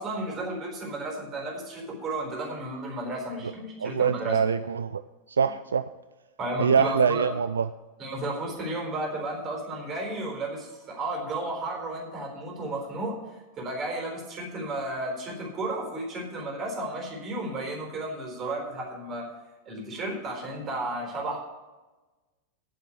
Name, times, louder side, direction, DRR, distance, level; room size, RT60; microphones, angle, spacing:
voice 1, 0.0-4.4 5.4-5.5 6.4-7.3 8.0-13.2 13.6-19.3 19.7-21.4, right 2 dB, 30° right, 0 dB, 4.1 m, -33 dB
voice 2, 3.8-5.0 5.4-5.8 6.6-7.6, right 6 dB, 70° right, 12 dB, 0.3 m, -24 dB
9.8 x 7.4 x 8.3 m, 1.2 s
figure-of-eight pair, 90°, 0 cm